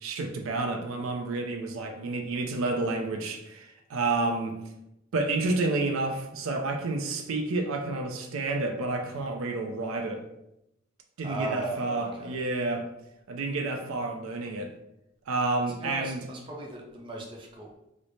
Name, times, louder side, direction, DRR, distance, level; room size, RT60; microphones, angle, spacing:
voice 1, 0.0-4.6 5.1-10.2 11.2-12.8 13.3-14.7 15.3-16.2, right 3 dB, 80° right, 4 dB, 0.4 m, -30 dB
voice 2, 11.2-12.3 15.8-17.8, right 1 dB, 25° right, -1 dB, 0.6 m, -37 dB
3.1 x 2.0 x 4.0 m, 0.87 s
head